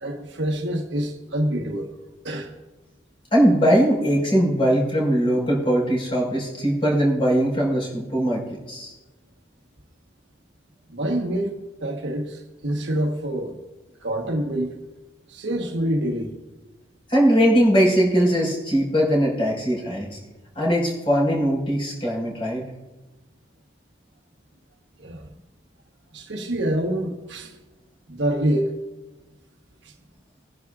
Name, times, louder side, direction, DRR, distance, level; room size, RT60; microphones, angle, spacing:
voice 1, 0.0-1.9 2.2-2.5 10.9-11.5 11.8-13.6 14.0-14.7 15.3-16.3 25.0-25.3 26.1-27.6 28.1-28.8 29.8-29.9, right 1 dB, 75° right, 1.3 m, -26 dB
voice 2, 3.3-8.9 17.1-20.2 20.6-22.6, equal, 30° left, 5.1 m, -20 dB
22.0 x 10.5 x 2.5 m
head